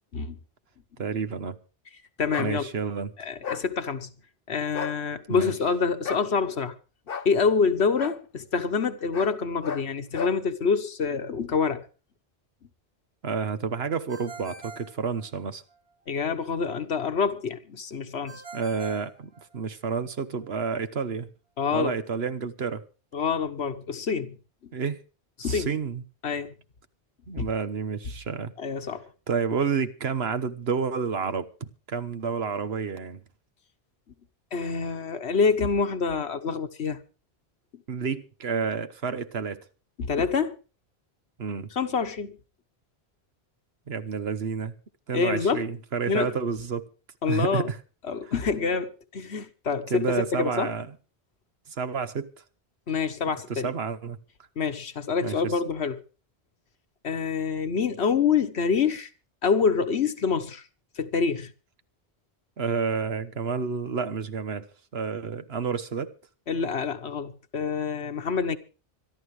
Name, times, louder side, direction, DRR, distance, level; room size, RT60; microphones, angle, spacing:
voice 1, 1.0-1.6 2.4-3.1 5.3-5.5 13.2-15.6 18.5-21.3 21.7-22.8 24.7-25.0 25.4-26.0 27.3-28.5 29.3-31.5 31.9-33.2 37.9-39.6 41.4-41.7 43.9-44.7 45.1-46.9 47.3-47.8 49.9-50.9 51.7-52.3 53.3-54.2 55.2-55.5 62.6-66.1, right 5 dB, 70° right, 1.4 m, -30 dB
voice 2, 2.2-2.6 3.2-4.1 4.5-6.7 7.2-11.8 16.1-18.4 21.6-21.9 23.1-24.4 25.4-25.7 26.2-26.5 27.4-27.5 28.6-29.0 34.5-37.0 40.0-40.6 41.7-42.4 45.1-45.7 46.1-46.3 47.2-47.7 48.0-50.7 52.9-53.7 54.6-56.0 57.0-59.1 59.4-60.6 61.0-61.5 66.5-68.6, left 5 dB, 80° left, 1.5 m, -26 dB
sound 1, 2.3-2.5 3.4-3.7 4.7-5.0 6.0-6.3 7.1-7.3 8.0-8.2 9.1-9.4 9.6-9.9 10.1-10.4, left 6 dB, 60° left, 1.1 m, -33 dB
Ringtone, 14.1-15.8 18.3-19.9, right 4 dB, 90° right, 4.0 m, -44 dB
25.5 x 11.5 x 3.3 m
omnidirectional pair, 1.1 m